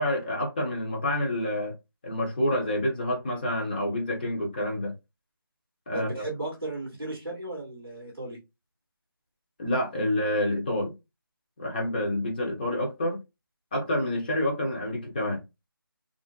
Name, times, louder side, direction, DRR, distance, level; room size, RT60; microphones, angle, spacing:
voice 1, 0.0-1.7 2.0-4.9 5.9-6.2 9.6-10.9 11.6-13.2 13.7-15.4, left 1 dB, 25° left, 0.8 m, -28 dB
voice 2, 5.9-8.4, right 2 dB, ahead, 0.3 m, -35 dB
2.8 x 2.6 x 2.4 m
figure-of-eight pair, 165°, 12 cm